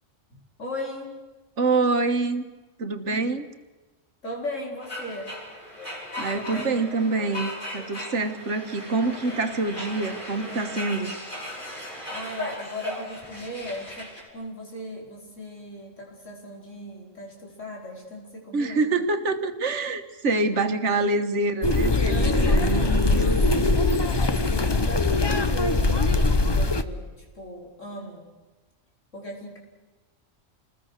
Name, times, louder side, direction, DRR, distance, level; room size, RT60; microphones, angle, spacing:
voice 1, 0.3-1.2 3.1-3.3 4.2-5.4 6.3-6.9 12.1-19.0 20.5-20.6 22.0-22.9 24.4-28.3 29.1-29.6, left 1 dB, 70° left, -1 dB, 5.2 m, -37 dB
voice 2, 1.6-2.4 2.8-3.5 6.2-11.1 18.5-23.4, right 3 dB, 65° right, 9 dB, 1.7 m, -26 dB
sound 1, 4.8-14.3, left 1 dB, 40° left, 5.3 m, -37 dB
sound 2, 21.6-26.8, left 2 dB, 25° left, 0.8 m, -21 dB
28.0 x 20.5 x 6.6 m, 1.2 s
omnidirectional pair, 1.3 m